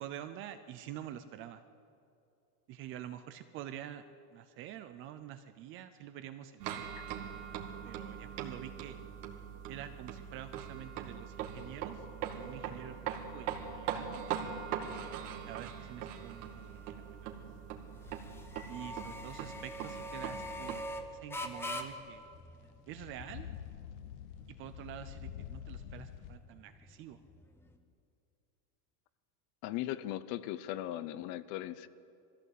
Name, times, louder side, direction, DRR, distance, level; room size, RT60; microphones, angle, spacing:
voice 1, 0.0-1.6 2.7-6.9 7.8-9.0 9.7-12.1 12.3-14.2 15.5-17.3 18.7-22.2 22.9-23.5 24.5-27.2, right 11 dB, 30° right, 10 dB, 0.4 m, -47 dB
sound 1, 6.6-20.9, right 8 dB, 75° right, 2.4 m, -41 dB
sound 2, 10.5-27.7, left 1 dB, 5° left, 0.9 m, -47 dB
sound 3, 18.0-26.4, left 10 dB, 65° left, 1.0 m, -50 dB
voice 2, 29.6-31.9, left 14 dB, 40° left, 15 dB, 0.6 m, -38 dB
21.0 x 15.0 x 8.3 m, 2.6 s
supercardioid pair, 165°, 46 cm